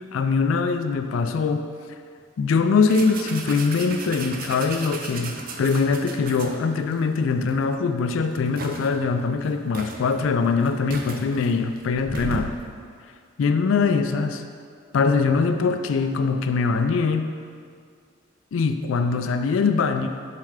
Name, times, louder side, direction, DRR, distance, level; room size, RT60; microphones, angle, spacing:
voice 1, 0.1-1.7 2.4-12.5 13.4-14.4 14.9-17.3 18.5-20.1, left 4 dB, 75° left, 7 dB, 0.3 m, -22 dB
sound 1, 2.9-6.9 7.5-7.6 8.0-9.0 9.5-9.6 9.7-12.6, right 3 dB, 45° right, 0.5 m, -35 dB
6.8 x 3.3 x 4.9 m, 2.1 s
head